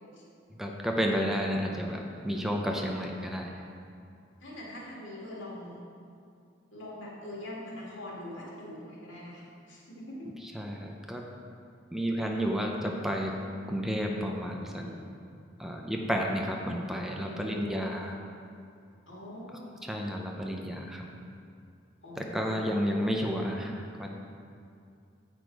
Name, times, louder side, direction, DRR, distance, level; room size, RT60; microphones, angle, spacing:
voice 1, 0.6-3.6 10.5-11.3 11.9-13.4 13.7-14.8 15.6-18.2 19.8-21.0 22.2-24.1, equal, ahead, 0 dB, 0.5 m, -31 dB
voice 2, 4.4-5.8 6.7-10.3 14.7-15.0 17.2-17.7 19.1-19.7 22.0-22.6, left 1 dB, 85° left, -5 dB, 1.9 m, -43 dB
8.2 x 5.1 x 4.5 m, 2.4 s
head